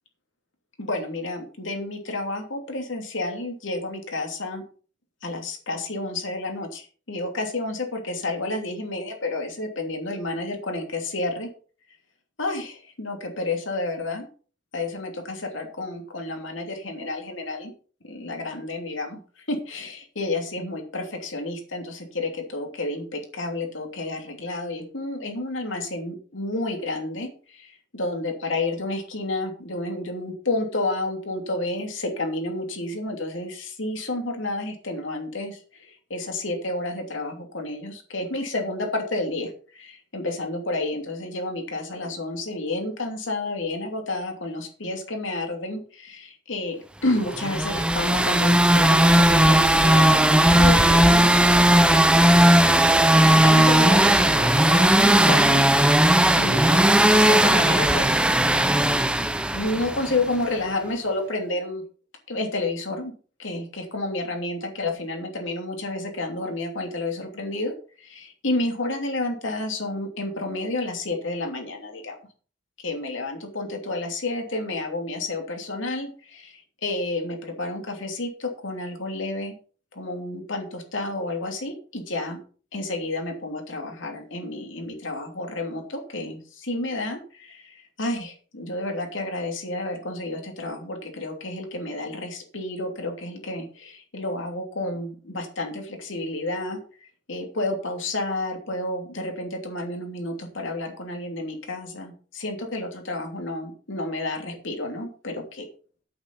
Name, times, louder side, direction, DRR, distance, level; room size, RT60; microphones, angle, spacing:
voice 1, 0.8-4.6 5.2-11.5 12.4-14.2 14.7-17.7 18.0-52.9 53.3-56.0 56.3-58.3 59.5-61.8 62.3-63.1 63.4-67.7 68.0-72.1 72.8-79.5 79.9-82.4 82.7-105.6, left 2 dB, 90° left, 3 dB, 2.9 m, -30 dB
sound 1, 47.3-60.2, right 1 dB, 5° right, 0.6 m, -17 dB
8.8 x 8.6 x 5.4 m, 0.41 s
head